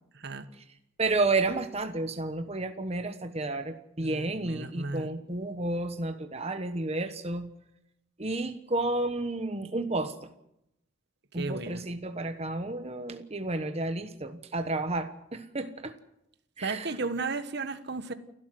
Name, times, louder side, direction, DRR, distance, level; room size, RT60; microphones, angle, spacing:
voice 1, 0.1-0.4 4.0-5.1 11.4-11.8 16.6-18.1, right 3 dB, 55° right, 10 dB, 1.4 m, -34 dB
voice 2, 1.0-7.5 8.2-10.3 11.3-16.0 16.6-16.9, right 2 dB, 30° right, 8 dB, 1.2 m, -31 dB
29.5 x 12.0 x 7.9 m, 0.82 s
head